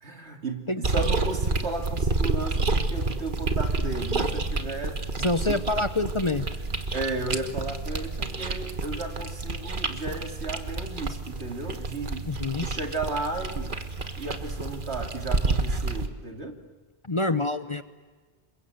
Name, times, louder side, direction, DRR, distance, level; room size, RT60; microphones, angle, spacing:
voice 1, 0.0-5.0 5.5-5.6 6.9-12.3 12.6-13.8 14.2-16.6, right 3 dB, 75° right, 3 dB, 3.1 m, -34 dB
sound 1, 0.8-16.1, right 3 dB, 50° right, 1.5 m, -29 dB
voice 2, 5.2-6.5 12.2-12.7 17.0-17.8, left 2 dB, 30° left, 10 dB, 0.9 m, -26 dB
27.5 x 23.0 x 8.0 m, 1.4 s
omnidirectional pair, 1.1 m